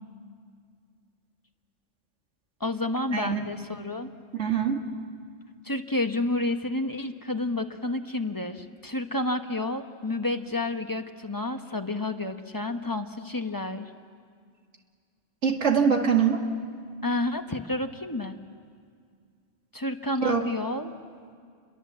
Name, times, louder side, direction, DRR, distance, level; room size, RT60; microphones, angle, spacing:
voice 1, 2.6-4.1 5.6-13.9 17.0-18.4 19.7-20.9, left 2 dB, 20° left, 7 dB, 0.9 m, -30 dB
voice 2, 4.4-4.8 15.4-16.4 20.2-20.5, right 6 dB, 80° right, 3 dB, 2.3 m, -23 dB
29.5 x 22.5 x 7.5 m, 2.1 s
omnidirectional pair, 1.2 m